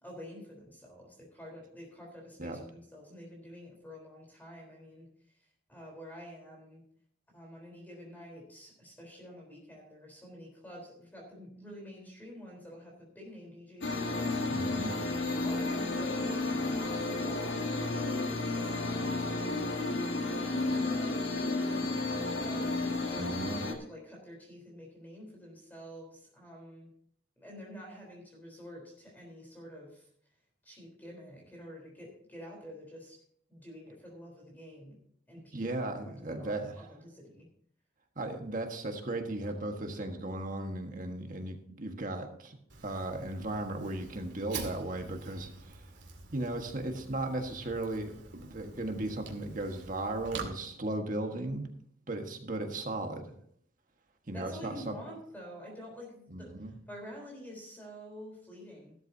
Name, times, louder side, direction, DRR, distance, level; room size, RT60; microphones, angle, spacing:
voice 1, 0.0-6.8 7.3-14.9 15.4-16.3 16.8-19.5 20.1-26.9 27.4-30.1 30.6-33.2 33.5-35.0 35.3-35.8 36.1-37.5 54.3-59.0, equal, 10° left, -1 dB, 3.9 m, -48 dB
sound 1, 13.8-23.7, left 2 dB, 70° left, 1.8 m, -32 dB
voice 2, 14.5-15.0 23.2-23.6 35.5-36.7 38.1-42.6 42.8-45.8 46.3-51.7 52.1-53.2 54.3-54.9 56.3-56.8, right 2 dB, 45° right, 4 dB, 1.5 m, -36 dB
Fire, 42.7-50.4, right 4 dB, 65° right, 2.3 m, -46 dB
15.0 x 12.5 x 2.8 m, 0.65 s
head